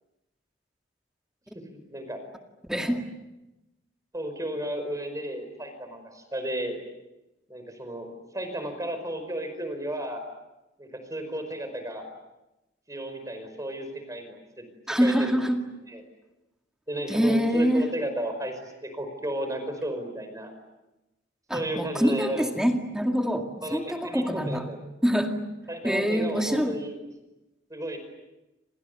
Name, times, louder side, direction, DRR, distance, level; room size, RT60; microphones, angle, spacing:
voice 1, 1.7-2.2 4.1-6.8 7.5-10.2 10.8-12.1 12.9-14.6 14.9-15.4 15.9-16.0 16.9-18.5 18.8-20.6 21.5-22.4 23.6-24.8 25.7-27.0 27.7-28.0, right 1 dB, 20° right, 7 dB, 5.2 m, -33 dB
voice 2, 2.7-3.0 14.9-15.6 17.1-17.9 21.5-24.6 25.0-25.4 25.8-26.8, equal, 5° right, 3 dB, 2.2 m, -25 dB
28.5 x 28.5 x 6.9 m, 0.98 s
head